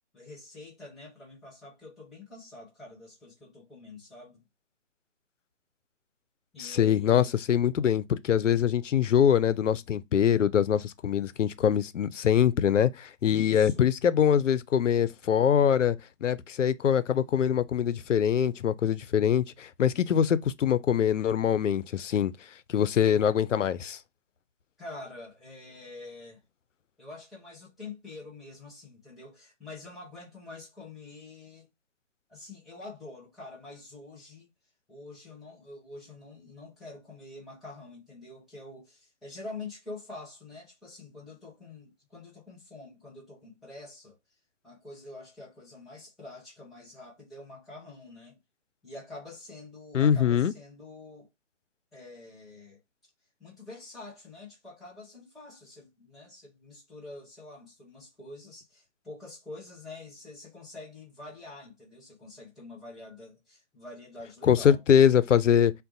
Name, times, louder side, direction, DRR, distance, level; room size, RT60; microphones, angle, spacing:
voice 1, 0.1-4.4 6.5-7.3 13.3-13.9 24.8-26.4 27.0-31.7 32.3-34.5 34.9-44.2 44.6-48.4 48.8-51.3 51.9-52.8 53.4-64.8, left 2 dB, ahead, 0.3 m, -46 dB
voice 2, 6.6-16.0 16.2-22.3 22.7-24.0 49.9-50.5 64.5-65.7, left 9 dB, 90° left, 0.5 m, -23 dB
2.6 x 2.1 x 3.8 m
figure-of-eight pair, 155°, 36 cm